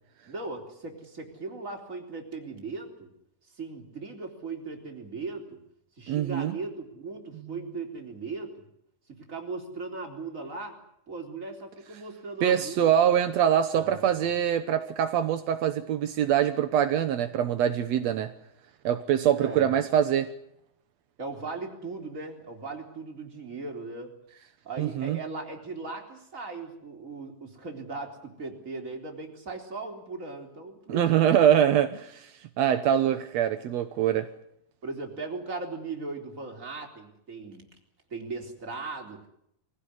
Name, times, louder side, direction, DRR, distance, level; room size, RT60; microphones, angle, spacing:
voice 1, 0.3-3.1 3.5-5.6 6.0-8.6 9.1-10.8 11.1-12.9 13.8-14.3 19.4-19.7 21.2-24.1 24.6-31.3 34.8-37.7 38.1-39.3, right 3 dB, 20° right, 2 dB, 3.8 m, -38 dB
voice 2, 6.1-6.6 12.4-18.3 18.8-20.3 24.8-25.2 30.9-34.3, right 10 dB, 75° right, 9 dB, 1.6 m, -24 dB
23.5 x 16.5 x 9.7 m, 0.76 s
omnidirectional pair, 4.4 m